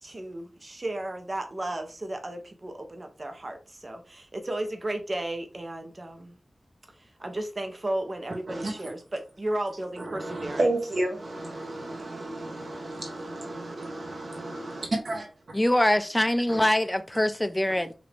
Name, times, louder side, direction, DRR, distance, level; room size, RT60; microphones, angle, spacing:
voice 1, 0.0-6.4 7.2-10.6, right 1 dB, 45° right, 1.0 m, -34 dB
voice 2, 8.5-8.9 10.0-15.3 16.5-16.6, right 2 dB, 75° right, 1.3 m, -32 dB
voice 3, 15.5-17.9, left 1 dB, 15° left, 0.4 m, -23 dB
5.0 x 2.7 x 3.5 m
wide cardioid pair, 70°, 0 cm